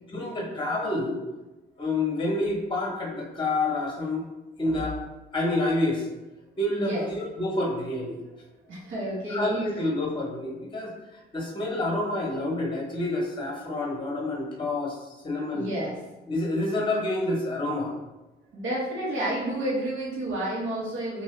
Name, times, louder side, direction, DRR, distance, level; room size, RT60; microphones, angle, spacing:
voice 1, 0.1-1.2 1.8-4.2 4.6-5.0 5.3-6.1 6.6-8.2 9.3-10.9 11.3-15.7 16.3-17.9, left 2 dB, 25° left, -1 dB, 0.9 m, -28 dB
voice 2, 6.7-7.1 8.7-9.6 15.5-16.0 18.5-21.2, right 1 dB, 75° right, -5 dB, 1.1 m, -30 dB
2.6 x 2.5 x 3.2 m, 1.0 s
cardioid pair, 90°, 20 cm